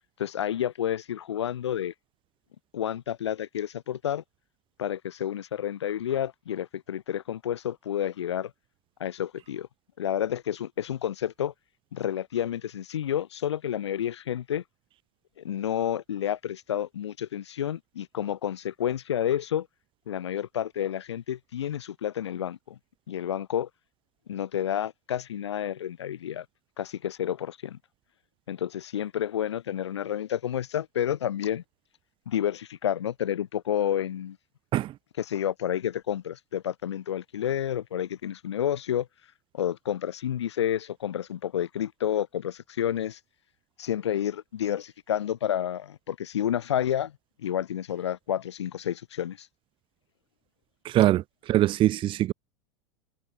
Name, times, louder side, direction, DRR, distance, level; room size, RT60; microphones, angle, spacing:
voice 1, 0.2-1.9 2.7-4.2 4.8-8.5 9.0-9.7 10.0-11.5 11.9-14.6 15.4-19.7 20.1-22.8 23.1-23.7 24.3-26.4 26.8-27.8 28.5-31.6 32.2-34.4 35.2-39.1 39.5-43.2 43.8-47.1 47.4-49.5, left 10 dB, 65° left, 6.7 m, -30 dB
voice 2, 50.8-51.2 51.5-52.3, right 14 dB, 35° right, 1.5 m, -22 dB
figure-of-eight pair, 85°, 15 cm